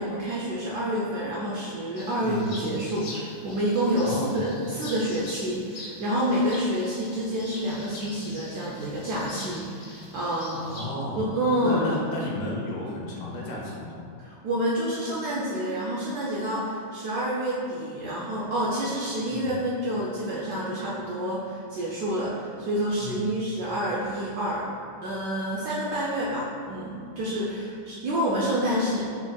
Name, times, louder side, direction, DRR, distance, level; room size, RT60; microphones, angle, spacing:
voice 1, 0.0-10.6 11.2-12.0 14.2-24.6 25.0-29.1, equal, 75° right, -6 dB, 0.9 m, -28 dB
sound 1, 2.0-10.8, left 2 dB, 60° left, 1.4 m, -43 dB
voice 2, 4.0-4.3 10.6-11.3 11.6-14.0 19.3-19.5 23.0-23.2, left 1 dB, 85° left, -3 dB, 1.6 m, -33 dB
4.5 x 4.1 x 2.2 m, 2.5 s
omnidirectional pair, 2.2 m